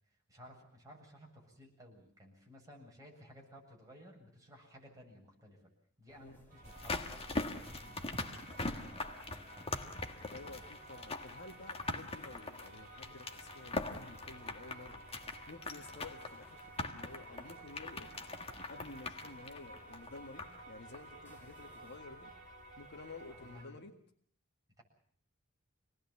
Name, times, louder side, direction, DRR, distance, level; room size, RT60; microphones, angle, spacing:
voice 1, 0.1-5.6 6.0-9.8 23.3-23.8 24.8-24.9, equal, 15° right, -1 dB, 7.6 m, -57 dB
sound 1, 6.1-22.0, equal, 10° left, 5.2 m, -63 dB
sound 2, 6.5-23.6, right 1 dB, 40° right, 7.9 m, -54 dB
sound 3, 6.6-20.7 20.9-21.0, left 2 dB, 25° left, 1.6 m, -42 dB
voice 2, 10.2-15.0 15.5-18.1 18.7-22.3 22.8-24.0, left 3 dB, 55° left, 4 dB, 1.8 m, -52 dB
27.0 x 19.5 x 7.3 m, 0.63 s
head